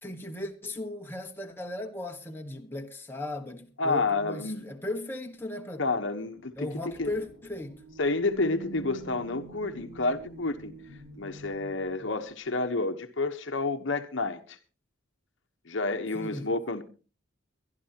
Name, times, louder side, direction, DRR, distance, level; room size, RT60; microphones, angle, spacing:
voice 1, 0.0-5.9 6.6-7.8 16.1-16.5, left 2 dB, 10° left, 1.3 m, -37 dB
voice 2, 3.8-4.7 5.8-7.1 8.0-10.7 11.2-14.6 15.7-16.8, left 3 dB, 65° left, 1.1 m, -30 dB
sound 1, 6.0-8.6, equal, 60° right, 7.8 m, -55 dB
sound 2, 7.3-12.1, right 3 dB, 80° right, 6.6 m, -46 dB
23.0 x 11.5 x 2.9 m
head